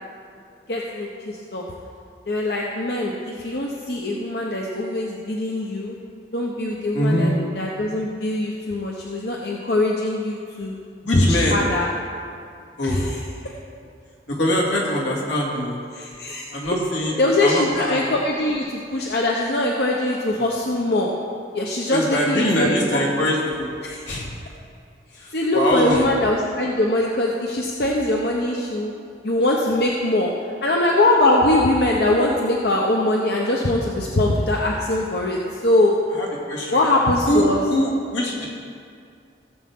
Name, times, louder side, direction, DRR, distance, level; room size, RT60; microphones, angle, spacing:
voice 1, 0.7-1.6 2.3-6.0 6.3-10.7 11.1-11.9 12.8-13.2 15.9-16.6 17.2-21.1 21.5-23.0 23.8-24.0 25.3-28.9 29.2-35.9 36.7-37.6, left 1 dB, 65° left, -1 dB, 0.8 m, -22 dB
voice 2, 6.9-7.3 11.0-11.6 12.8-13.2 14.3-15.8 16.5-17.1 17.4-18.0 21.9-23.7 24.1-24.3 25.1-26.1 36.2-36.8 37.3-38.5, equal, 85° left, -4 dB, 2.4 m, -23 dB
16.5 x 7.6 x 3.6 m, 2.4 s
head